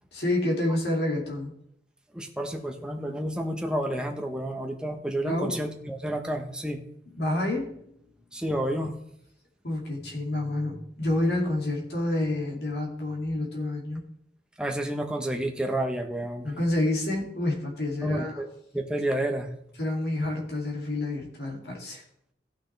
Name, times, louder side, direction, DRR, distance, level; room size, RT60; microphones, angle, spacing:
voice 1, 0.1-1.5 5.2-5.6 7.2-7.9 9.6-14.0 16.4-18.4 19.8-22.0, left 1 dB, 65° left, -1 dB, 2.6 m, -28 dB
voice 2, 2.1-6.8 8.3-8.9 14.6-16.5 18.0-18.5 18.7-19.5, right 1 dB, 5° right, 2 dB, 1.0 m, -30 dB
15.5 x 6.2 x 3.4 m, 0.73 s
head